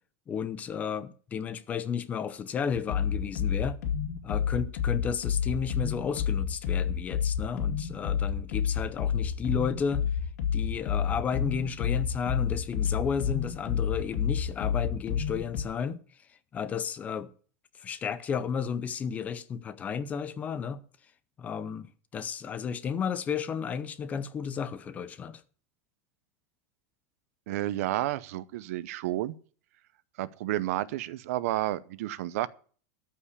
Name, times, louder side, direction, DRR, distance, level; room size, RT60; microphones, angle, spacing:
voice 1, 0.3-3.8 4.2-10.0 10.5-16.0 16.5-17.3 17.8-20.8 21.4-25.4, left 6 dB, 15° left, 0.6 m, -33 dB
sound 1, 2.7-15.6, left 8 dB, 70° left, 2.6 m, -30 dB
voice 2, 27.5-29.3 30.2-32.5, right 15 dB, 65° right, 0.7 m, -31 dB
13.5 x 5.7 x 8.2 m
supercardioid pair, 175°, 9 cm